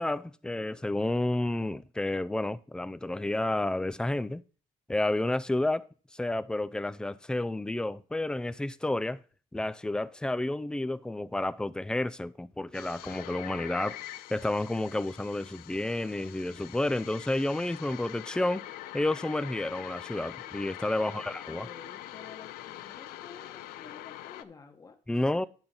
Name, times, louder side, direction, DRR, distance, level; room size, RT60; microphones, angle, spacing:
voice 1, 0.0-4.4 4.9-9.2 9.5-14.0 14.3-18.6 18.9-21.7 25.1-25.5, left 1 dB, 5° left, 0.3 m, -30 dB
sound 1, 12.7-24.4, left 14 dB, 85° left, 0.5 m, -44 dB
voice 2, 21.0-25.3, left 5 dB, 25° left, 1.2 m, -52 dB
10.5 x 4.4 x 5.4 m
cardioid pair, 120°, 15 cm